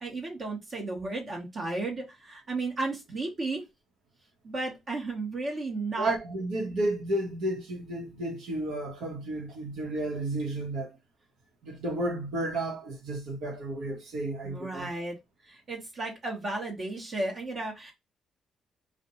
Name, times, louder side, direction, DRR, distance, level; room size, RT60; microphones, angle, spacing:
voice 1, 0.0-3.6 4.4-6.2 14.4-15.2 15.4-17.9, right 2 dB, 45° right, 1.0 m, -34 dB
voice 2, 6.0-11.0 11.6-14.9, right 1 dB, 75° right, 0.9 m, -32 dB
2.4 x 2.1 x 2.9 m
cardioid pair, 90°, 0 cm